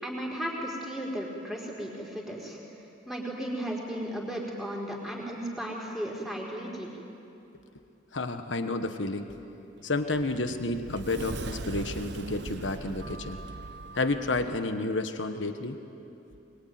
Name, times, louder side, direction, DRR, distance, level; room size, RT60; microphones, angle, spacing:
voice 1, 0.0-2.6 3.1-6.9, equal, ahead, -3 dB, 4.4 m, -35 dB
voice 2, 8.1-9.4 9.8-13.4 13.9-15.8, left 2 dB, 85° left, 7 dB, 1.4 m, -30 dB
Sliding door, 9.8-14.6, right 3 dB, 65° right, 0.6 m, -40 dB
23.5 x 23.0 x 9.5 m, 2.9 s
head